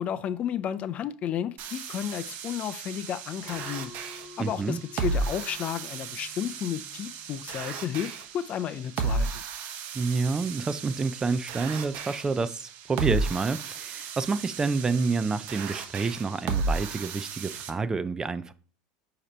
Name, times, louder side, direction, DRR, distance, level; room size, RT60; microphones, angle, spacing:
voice 1, 0.0-3.9 4.4-9.4, left 9 dB, 40° left, 0.4 m, -32 dB
sound 1, 1.6-17.7, right 4 dB, 55° right, 1.0 m, -34 dB
sound 2, 3.5-8.6, left 3 dB, 5° right, 3.0 m, -51 dB
voice 2, 4.4-4.8 9.9-18.5, right 4 dB, 20° right, 0.4 m, -28 dB
8.1 x 2.9 x 4.3 m
supercardioid pair, 105°, 3 cm